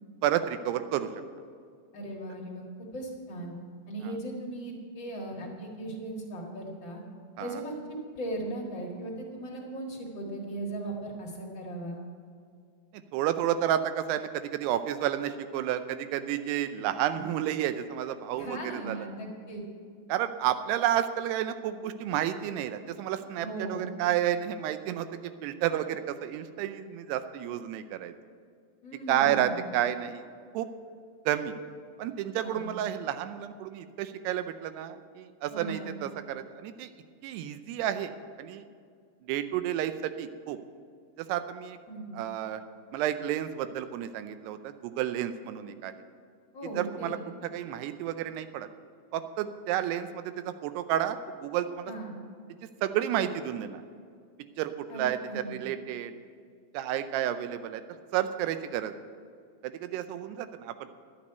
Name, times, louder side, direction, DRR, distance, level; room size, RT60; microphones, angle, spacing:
voice 1, 0.2-1.1 7.4-7.6 13.1-19.1 20.1-28.1 29.1-30.2 30.5-30.7 31.3-31.6 32.0-36.9 37.2-38.1 38.4-38.7 39.2-40.6 41.2-41.8 42.1-42.6 42.9-45.9 46.8-47.2 47.5-48.7 49.1-51.9 52.8-53.8 54.6-56.1 56.7-57.8 58.1-58.9 59.6-61.0, right 11 dB, 85° right, 11 dB, 2.7 m, -31 dB
voice 2, 1.9-3.5 3.9-7.0 7.4-7.8 8.1-12.0 18.4-19.6 23.4-23.9 28.8-29.6 32.4-32.7 35.5-36.0 41.9-42.1 46.5-47.2 51.9-52.1 54.9-55.5, right 1 dB, 45° left, -1 dB, 1.6 m, -38 dB
11.5 x 8.5 x 8.0 m, 2.1 s
omnidirectional pair, 4.7 m